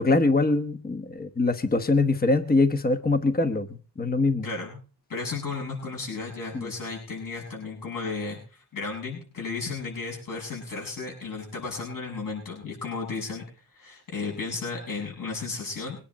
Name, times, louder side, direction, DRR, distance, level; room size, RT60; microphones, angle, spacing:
voice 1, 0.0-3.7 4.0-4.5 6.5-6.7, left 3 dB, 25° left, 9 dB, 1.2 m, -23 dB
voice 2, 4.4-4.8 5.1-13.4 13.7-16.0, left 4 dB, 55° left, -1 dB, 7.6 m, -34 dB
23.0 x 10.0 x 4.2 m, 0.38 s
wide cardioid pair, 160°, 39 cm